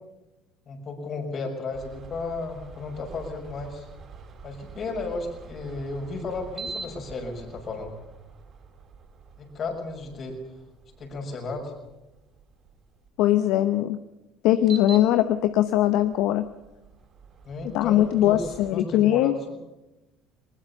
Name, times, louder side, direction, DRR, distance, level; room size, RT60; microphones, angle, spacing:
voice 1, 0.7-3.9 4.4-7.9 9.4-10.4 11.0-11.7 17.4-19.3, left 3 dB, 45° left, 3 dB, 5.9 m, -34 dB
sound 1, 1.7-13.1 14.5-18.7, right 5 dB, 45° right, 5.1 m, -45 dB
voice 2, 13.2-14.0 14.4-16.4 17.7-19.3, left 13 dB, 70° left, 11 dB, 0.8 m, -21 dB
20.0 x 20.0 x 7.1 m, 1.0 s
hypercardioid pair, 70°, 0 cm